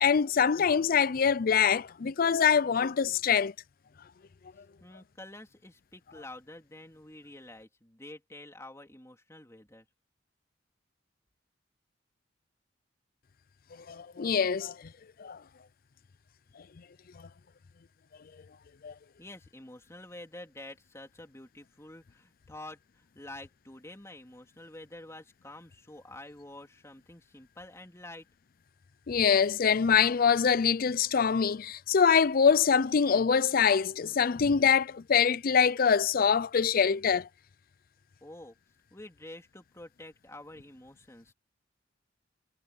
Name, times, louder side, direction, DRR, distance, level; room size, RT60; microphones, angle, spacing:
voice 1, 0.0-3.5 13.9-14.8 15.2-15.4 18.8-18.9 29.1-37.3, left 6 dB, 50° left, 0.5 m, -24 dB
voice 2, 4.8-9.9 19.2-28.3 38.2-38.6 38.9-41.3, left 1 dB, 15° left, 3.5 m, -48 dB
head